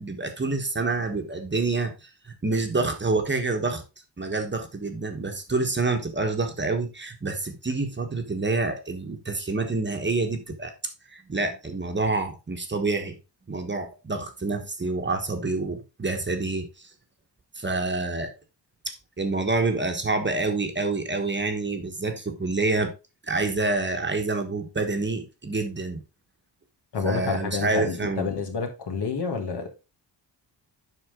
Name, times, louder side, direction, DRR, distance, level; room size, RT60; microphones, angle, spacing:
voice 1, 0.0-3.8 4.2-10.7 11.1-13.2 13.5-16.9 17.5-18.3 18.8-22.9 23.2-26.0 27.0-28.3, right 3 dB, 25° right, 1.2 m, -27 dB
voice 2, 26.9-29.7, left 5 dB, 65° left, 2.0 m, -29 dB
8.0 x 5.6 x 3.7 m
wide cardioid pair, 140°, 44 cm